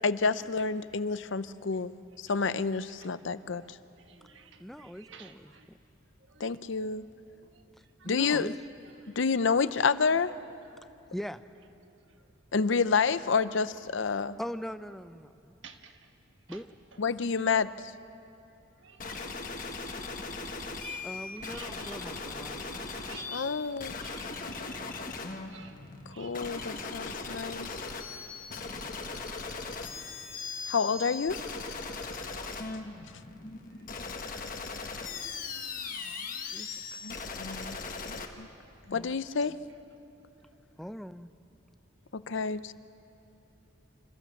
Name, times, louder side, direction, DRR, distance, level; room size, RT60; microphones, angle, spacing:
voice 1, 0.0-1.9 2.2-3.8 6.4-7.1 8.1-8.5 9.2-10.3 12.5-14.4 17.0-17.9 23.3-24.0 26.2-27.9 30.7-31.4 37.0-37.8 38.1-38.5 38.9-39.6 42.1-42.7, left 5 dB, 65° left, 14 dB, 0.6 m, -29 dB
voice 2, 4.1-5.7 7.5-7.6 8.0-8.1 15.6-15.9 16.5-16.6 18.8-19.5 20.8-21.1 21.5-22.0 23.1-23.5 24.0-24.3 25.5-25.8 26.1-26.3 29.2-29.3 30.2-30.3 37.0-37.3 37.6-37.7, right 7 dB, 65° right, 5 dB, 1.5 m, -51 dB
voice 3, 4.6-5.8 8.0-8.5 9.0-9.1 11.1-11.4 14.4-15.6 16.5-16.7 21.0-22.9 34.5-34.6 36.5-36.7 37.3-37.4 38.9-39.2 40.8-41.3, equal, ahead, 11 dB, 0.4 m, -41 dB
sound 1, 19.0-38.3, left 4 dB, 40° left, 1.3 m, -39 dB
27.0 x 15.0 x 7.2 m, 2.9 s
head